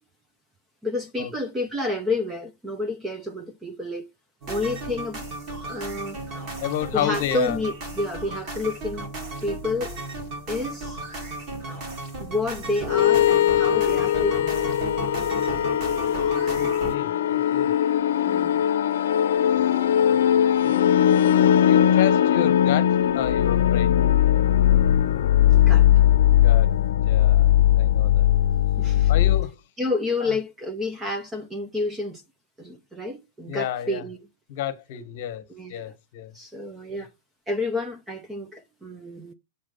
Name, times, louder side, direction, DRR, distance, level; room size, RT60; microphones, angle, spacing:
voice 1, 0.8-4.1 4.5-5.2 5.6-6.2 6.9-9.1 9.4-9.9 10.5-11.0 12.2-14.7 18.2-18.6 24.0-24.2 25.5-25.9 28.8-29.1 29.8-32.2 32.6-34.2 35.5-35.8 36.3-37.1 37.5-39.3, left 2 dB, 5° right, 0.5 m, -29 dB
sound 1, 4.4-17.0, right 2 dB, 30° right, 1.6 m, -35 dB
voice 2, 6.6-7.6 16.5-17.7 20.0-20.7 21.4-24.0 26.3-26.7 27.1-28.3 29.1-29.6 30.2-30.3 33.5-34.0 34.5-36.3, left 11 dB, 40° left, 1.3 m, -31 dB
sound 2, 12.9-29.5, left 11 dB, 70° left, 0.7 m, -19 dB
7.6 x 4.6 x 5.5 m
supercardioid pair, 180°, 0 cm